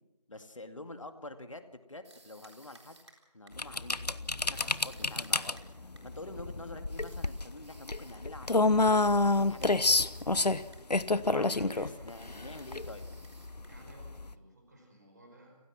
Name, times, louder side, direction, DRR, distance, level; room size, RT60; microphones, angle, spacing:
voice 1, 0.3-3.0 3.3-4.2 4.5-8.7 9.0-10.1 10.9-13.1, left 2 dB, 50° left, 8 dB, 2.2 m, -47 dB
sound 1, 2.0-3.8 4.5-6.3 6.9-8.3 9.3-10.9 11.1-11.5 12.1-14.0, right 2 dB, 45° right, 3.8 m, -59 dB
sound 2, 3.6-14.3, left 2 dB, 80° left, 1.0 m, -29 dB
voice 2, 11.1-12.4 13.7-15.6, equal, 25° right, 2 dB, 4.9 m, -55 dB
30.0 x 16.0 x 6.1 m, 0.99 s
figure-of-eight pair, 170°, 20 cm